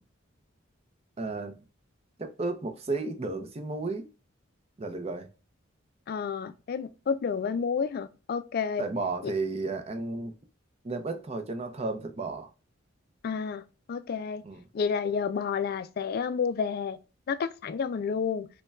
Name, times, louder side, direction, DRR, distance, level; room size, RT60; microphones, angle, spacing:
voice 1, 1.2-1.5 2.2-4.1 4.8-5.3 8.8-10.3 10.8-12.5 14.4-14.6, right 3 dB, 30° right, 0.5 m, -33 dB
voice 2, 6.1-8.8 9.2-9.3 13.2-14.4 14.7-17.0 17.3-18.5, left 6 dB, 50° left, 0.3 m, -30 dB
5.3 x 2.2 x 2.2 m
head